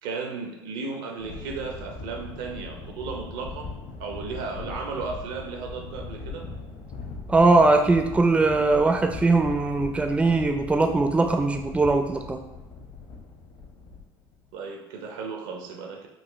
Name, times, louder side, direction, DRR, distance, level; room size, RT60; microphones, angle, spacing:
voice 1, 0.0-3.7 4.0-6.5 14.5-16.1, right 4 dB, 80° right, 2 dB, 0.7 m, -35 dB
sound 1, 1.2-14.5, left 4 dB, 55° left, 0.9 m, -40 dB
voice 2, 7.3-12.4, right 3 dB, 10° right, 4 dB, 0.4 m, -20 dB
4.0 x 2.1 x 3.1 m, 1.0 s
supercardioid pair, 80°, 12 cm